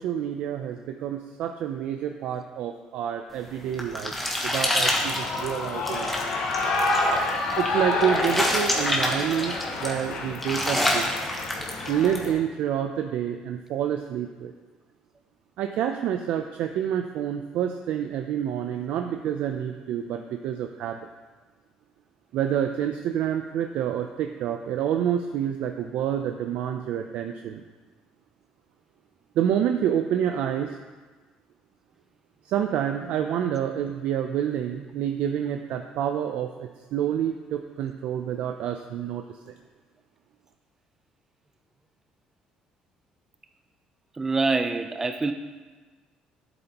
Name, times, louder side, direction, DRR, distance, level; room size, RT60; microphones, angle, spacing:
voice 1, 0.0-4.1 4.4-6.1 7.6-11.1 11.9-14.5 15.6-21.0 22.3-27.6 29.4-30.8 32.4-39.2, right 9 dB, 70° right, 5 dB, 0.5 m, -28 dB
sound 1, 3.4-12.3, left 1 dB, 5° left, 1.2 m, -28 dB
Shout / Cheering, 4.6-12.3, left 2 dB, 75° left, 1.7 m, -29 dB
voice 2, 44.1-45.3, right 3 dB, 15° right, 8 dB, 0.5 m, -25 dB
11.0 x 8.0 x 2.9 m, 1.3 s
cardioid pair, 135°, 2 cm